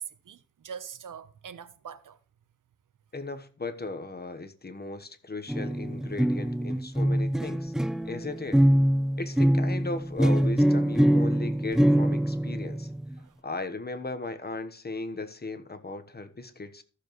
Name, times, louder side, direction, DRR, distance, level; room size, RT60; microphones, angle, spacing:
voice 1, 0.0-2.2 7.1-7.2 13.2-13.3, right 7 dB, 70° right, 0.9 m, -43 dB
voice 2, 3.1-7.7 8.0-8.6 9.2-12.9 13.4-16.8, left 3 dB, 30° left, 1.1 m, -37 dB
sound 1, 5.5-13.1, equal, ahead, 0.3 m, -24 dB
14.5 x 7.0 x 3.1 m
wide cardioid pair, 95°, 33 cm